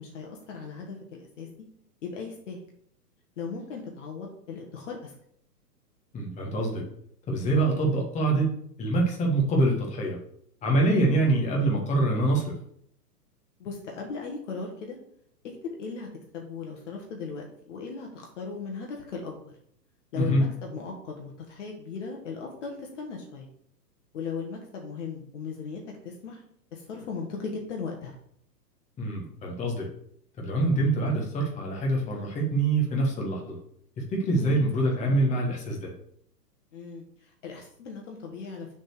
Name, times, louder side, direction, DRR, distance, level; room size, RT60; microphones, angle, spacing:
voice 1, 0.0-1.5 2.0-2.6 3.4-5.1 11.1-11.3 13.6-15.0 15.6-16.1 16.3-19.3 20.1-23.5 24.1-26.4 26.7-28.2 34.4-34.6 36.7-38.7, left 5 dB, 45° left, 0 dB, 1.7 m, -37 dB
voice 2, 6.1-6.8 7.3-8.5 8.8-10.2 10.6-12.5 20.1-20.4 29.0-29.9 30.4-33.6 34.0-35.9, right 2 dB, 15° left, -1 dB, 1.5 m, -25 dB
6.5 x 4.3 x 6.6 m, 0.68 s
figure-of-eight pair, 110°, 49 cm